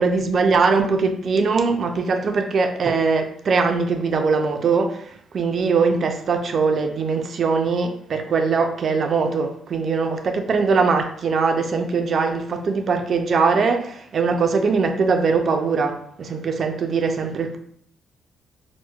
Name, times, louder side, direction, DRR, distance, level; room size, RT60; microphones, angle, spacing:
voice 1, 0.0-17.6, right 4 dB, 50° right, 0.4 m, -21 dB
4.4 x 2.1 x 2.3 m
cardioid pair, 90°, 0 cm